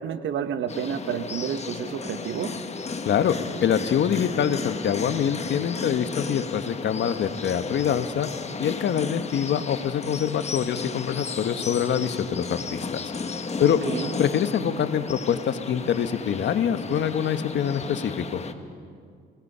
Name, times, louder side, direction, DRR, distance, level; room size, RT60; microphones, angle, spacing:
voice 1, 0.0-2.5 13.6-14.1, right 8 dB, 70° right, 10 dB, 1.4 m, -30 dB
sound 1, 0.7-18.5, left 4 dB, 35° left, 1.3 m, -34 dB
voice 2, 3.0-8.3 8.6-13.0 13.6-13.8 14.2-18.4, left 8 dB, 65° left, 10 dB, 1.2 m, -25 dB
26.5 x 18.0 x 5.6 m, 2.2 s
cardioid pair, 90°, 20 cm